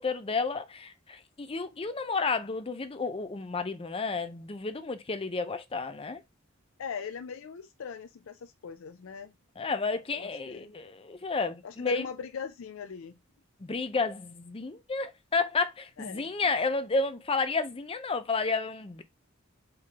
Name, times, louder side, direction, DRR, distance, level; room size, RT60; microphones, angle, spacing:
voice 1, 0.0-6.2 9.6-12.1 13.6-19.0, left 4 dB, 25° left, 0.6 m, -31 dB
voice 2, 6.8-9.3 10.1-10.7 11.6-13.1 16.0-16.3, left 6 dB, 70° left, 0.4 m, -40 dB
4.6 x 3.8 x 2.8 m
head